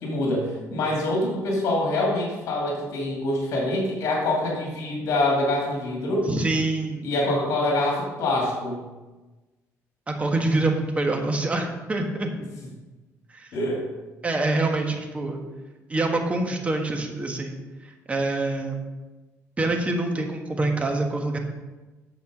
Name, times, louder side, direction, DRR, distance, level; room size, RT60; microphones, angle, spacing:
voice 1, 0.0-6.3 7.0-8.8 12.3-12.4 13.5-13.8, left 1 dB, 70° left, -2 dB, 2.5 m, -25 dB
voice 2, 6.2-7.1 10.1-12.3 13.3-13.5 14.2-15.4 15.9-17.5 18.1-18.8 19.6-21.4, right 2 dB, 25° right, 3 dB, 1.5 m, -25 dB
8.7 x 6.9 x 5.3 m, 1.2 s
cardioid pair, 110°, 6 cm